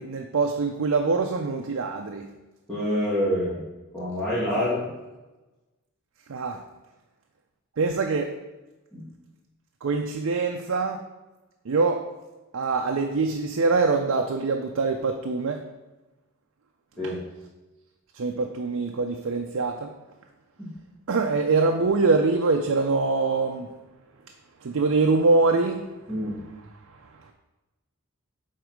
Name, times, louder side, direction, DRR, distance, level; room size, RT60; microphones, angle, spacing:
voice 1, 0.0-2.3 4.6-4.7 6.3-6.6 7.8-8.4 9.8-11.0 11.6-12.1 12.5-15.6 17.0-17.1 18.1-19.9 21.1-23.7 24.6-26.4 27.0-27.3, right 3 dB, 70° right, 3 dB, 0.5 m, -24 dB
voice 2, 2.7-3.6 3.9-4.8 8.9-9.0 17.0-17.2 20.6-20.7 26.1-26.4, equal, 5° left, -12 dB, 1.8 m, -26 dB
6.6 x 3.9 x 4.6 m, 1.1 s
head